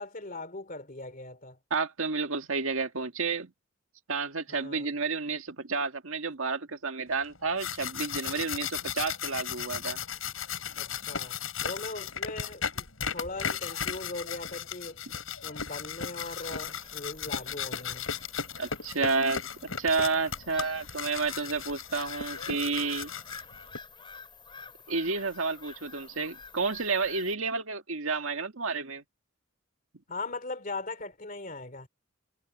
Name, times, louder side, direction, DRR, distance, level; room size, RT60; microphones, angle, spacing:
voice 1, 0.0-1.6 4.5-4.9 10.7-12.9 13.1-15.0 15.4-18.1 30.1-31.9, left 2 dB, 40° left, 3.3 m, -39 dB
voice 2, 1.7-3.5 4.1-10.0 18.6-23.2 24.9-29.0, right 4 dB, 85° right, 1.8 m, -30 dB
sound 1, 7.4-23.8, left 7 dB, 80° left, 6.5 m, -36 dB
Bird vocalization bird call bird song / Gull seagull, 16.2-27.3, left 4 dB, 25° left, 3.8 m, -48 dB
head